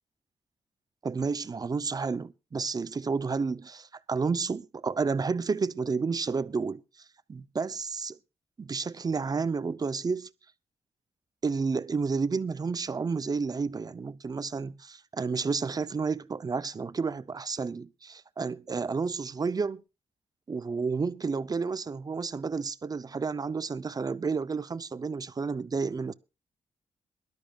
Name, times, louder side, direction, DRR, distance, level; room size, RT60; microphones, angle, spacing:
voice 1, 1.0-6.8 7.3-8.2 8.6-10.3 11.4-19.8 20.5-26.1, right 4 dB, 35° right, 0.6 m, -31 dB
22.5 x 12.5 x 2.4 m
cardioid pair, 90°, 11 cm